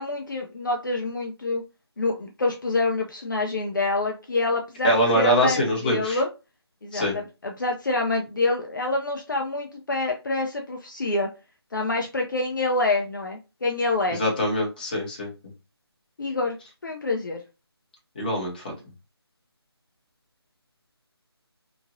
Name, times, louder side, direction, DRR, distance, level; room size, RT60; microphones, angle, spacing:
voice 1, 0.0-1.6 2.0-6.3 6.8-11.3 11.7-14.2 16.2-16.6 16.8-17.4, left 3 dB, 50° left, 2 dB, 0.4 m, -26 dB
voice 2, 4.8-6.2 6.9-7.1 14.1-15.3 18.2-18.6, equal, 20° left, -2 dB, 0.8 m, -23 dB
2.9 x 2.4 x 2.6 m, 0.29 s
figure-of-eight pair, 170°, 14 cm